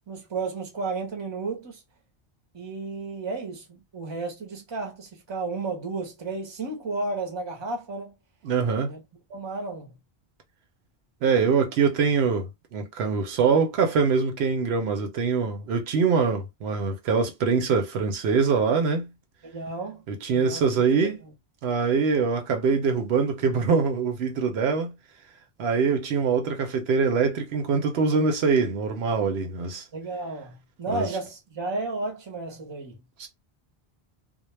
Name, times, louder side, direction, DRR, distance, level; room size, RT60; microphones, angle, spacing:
voice 1, 0.1-1.8 2.5-8.1 8.8-9.0 9.3-9.9 19.4-20.0 20.3-20.6 21.0-21.1 29.9-33.0, right 3 dB, 30° right, 0.7 m, -33 dB
voice 2, 8.4-8.9 11.2-19.1 20.1-21.2 21.6-24.9 25.6-29.8 30.9-31.1 33.2-33.3, right 5 dB, 80° right, 0.8 m, -24 dB
2.2 x 2.1 x 3.0 m
omnidirectional pair, 1.1 m